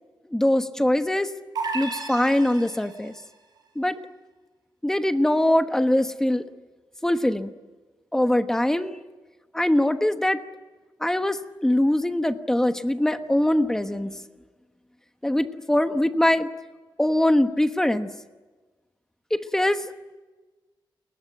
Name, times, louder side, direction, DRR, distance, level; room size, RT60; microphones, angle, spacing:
voice 1, 0.3-1.3 1.7-3.1 3.7-4.0 4.8-6.5 7.0-7.5 8.1-8.9 9.5-10.4 11.0-14.1 15.2-16.5 17.0-18.1 19.3-19.9, left 1 dB, 5° left, 9 dB, 1.1 m, -22 dB
sound 1, 1.6-3.2, right 4 dB, 55° right, 5.9 m, -33 dB
29.5 x 21.5 x 9.1 m, 1.3 s
wide cardioid pair, 170°, 8 cm